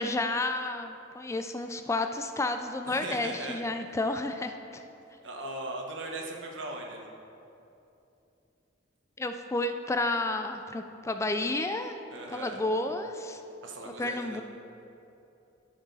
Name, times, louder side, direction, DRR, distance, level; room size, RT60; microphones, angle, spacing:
voice 1, 0.0-4.8 9.2-11.9 12.3-13.4 14.0-14.4, left 2 dB, 15° left, 7 dB, 0.3 m, -31 dB
voice 2, 2.8-3.6 5.2-7.1 12.1-12.6 13.6-14.4, right 2 dB, 75° right, 1 dB, 1.3 m, -39 dB
12.5 x 6.0 x 4.0 m, 2.7 s
head